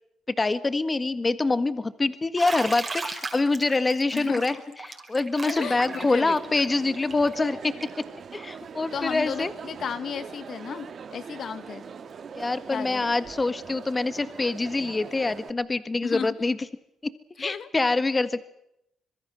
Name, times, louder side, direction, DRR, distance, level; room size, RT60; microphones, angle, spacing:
voice 1, 0.4-7.7 8.3-9.5 12.3-16.6 17.0-17.1 17.4-18.5, left 3 dB, 25° left, 13 dB, 1.7 m, -25 dB
Bathtub (filling or washing), 2.4-8.0, right 3 dB, 25° right, 5.0 m, -36 dB
voice 2, 4.1-4.6 5.4-6.4 8.9-11.8 12.7-13.1 16.0-16.3 17.4-17.7, left 7 dB, 55° left, 13 dB, 1.7 m, -34 dB
Crowd, 5.6-15.5, right 6 dB, 50° right, 2.2 m, -42 dB
26.0 x 23.0 x 7.8 m, 0.79 s
cardioid pair, 90°, 0 cm